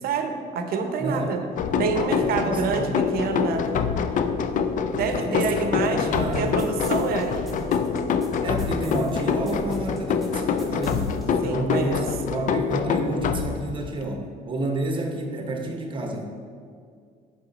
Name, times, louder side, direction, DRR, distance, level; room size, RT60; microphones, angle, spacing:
voice 1, 0.0-1.4 1.8-3.7 4.9-7.6 11.4-12.0, right 5 dB, 65° right, 6 dB, 0.7 m, -27 dB
voice 2, 1.0-1.6 2.1-2.9 5.0-6.5 8.4-16.2, right 1 dB, 30° right, 3 dB, 0.9 m, -30 dB
sound 1, 1.6-14.0, left 6 dB, 50° left, 0.4 m, -25 dB
sound 2, 6.3-11.3, right 1 dB, ahead, 0.9 m, -43 dB
7.0 x 4.9 x 4.0 m, 2.2 s
cardioid pair, 110°, 17 cm